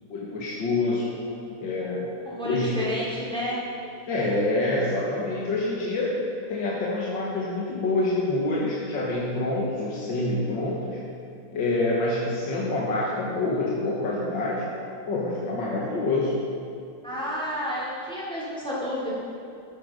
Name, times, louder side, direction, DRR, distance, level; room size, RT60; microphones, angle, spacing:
voice 1, 0.1-1.1 1.6-2.1 2.4-2.8 4.1-6.1 6.5-11.0 11.5-14.7 15.1-16.4, left 2 dB, 65° left, -5 dB, 2.2 m, -26 dB
voice 2, 2.2-3.6 17.0-19.1, left 1 dB, ahead, -7 dB, 3.2 m, -30 dB
13.5 x 8.7 x 5.3 m, 2.7 s
omnidirectional pair, 2.2 m